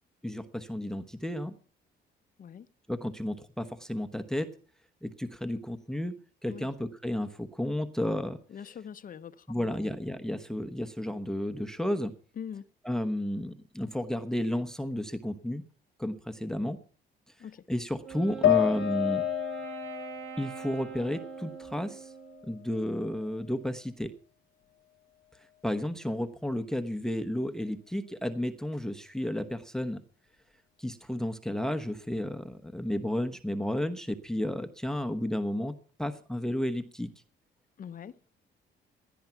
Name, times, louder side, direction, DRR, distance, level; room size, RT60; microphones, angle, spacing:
voice 1, 0.2-1.5 2.9-4.5 5.0-6.1 6.4-8.4 9.5-12.1 12.8-15.6 16.0-16.8 17.4-19.2 20.4-22.1 22.5-24.1 25.6-30.0 30.8-35.7 36.0-37.1, left 1 dB, 5° left, 1.0 m, -32 dB
voice 2, 8.5-9.9 12.4-12.6 17.4-17.6 37.8-38.2, left 8 dB, 45° left, 0.9 m, -43 dB
Wind instrument woodwind instrument, 18.0-22.6, right 7 dB, 80° right, 2.7 m, -42 dB
sound 1, 18.4-21.8 22.2-23.3, left 13 dB, 80° left, 0.7 m, -31 dB
17.0 x 10.5 x 5.8 m
cardioid pair, 120°, 20 cm